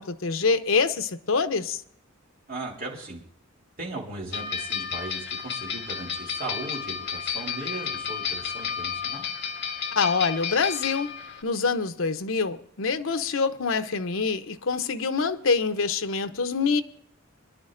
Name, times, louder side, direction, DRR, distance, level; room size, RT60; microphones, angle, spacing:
voice 1, 0.0-1.8 10.0-11.1 11.4-16.8, left 4 dB, 85° left, 0.8 m, -25 dB
voice 2, 2.5-3.2 3.8-9.2, right 2 dB, 50° right, 3.3 m, -37 dB
sound 1, 4.3-11.4, left 7 dB, 60° left, 1.7 m, -32 dB
24.0 x 11.5 x 2.5 m
head